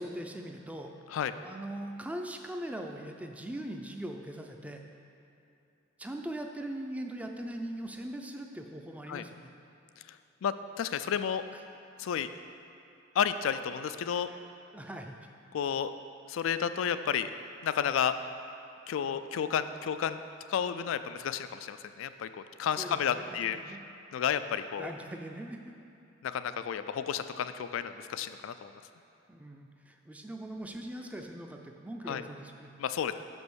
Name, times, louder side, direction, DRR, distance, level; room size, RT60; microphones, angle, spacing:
voice 1, 0.0-0.9 1.4-4.8 6.0-9.5 14.3-14.4 14.7-15.2 22.8-23.8 24.8-25.7 27.0-27.1 29.3-32.7, right 1 dB, 5° right, 3 dB, 0.4 m, -41 dB
voice 2, 10.1-11.5 12.0-12.3 13.1-14.3 15.5-15.9 16.3-17.3 17.6-18.2 18.9-20.2 20.5-23.6 24.1-24.9 26.2-28.7 32.1-32.2 32.8-33.1, left 8 dB, 75° left, 11 dB, 0.3 m, -31 dB
6.1 x 5.3 x 6.2 m, 2.8 s
head